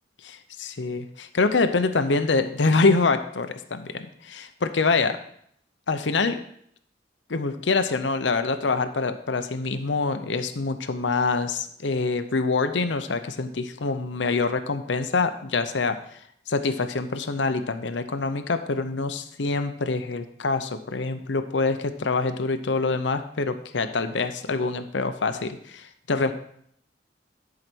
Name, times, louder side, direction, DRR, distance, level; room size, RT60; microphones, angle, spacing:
voice 1, 0.2-5.2 5.9-6.4 7.3-16.0 16.5-26.3, left 3 dB, 85° left, 9 dB, 0.7 m, -25 dB
11.0 x 4.9 x 6.1 m, 0.68 s
head